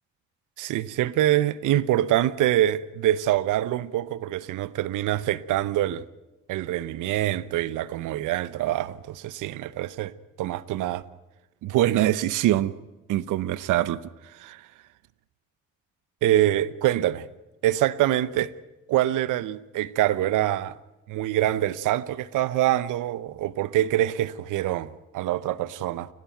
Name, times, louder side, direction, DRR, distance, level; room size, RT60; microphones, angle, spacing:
voice 1, 0.6-6.0 6.5-10.1 10.4-11.0 11.6-12.7 13.1-14.0 14.3-14.6 16.2-17.3 17.6-18.5 18.9-20.8 21.1-26.1, right 13 dB, 85° right, 0.9 m, -25 dB
30.0 x 12.0 x 9.2 m
cardioid pair, 90°, 30 cm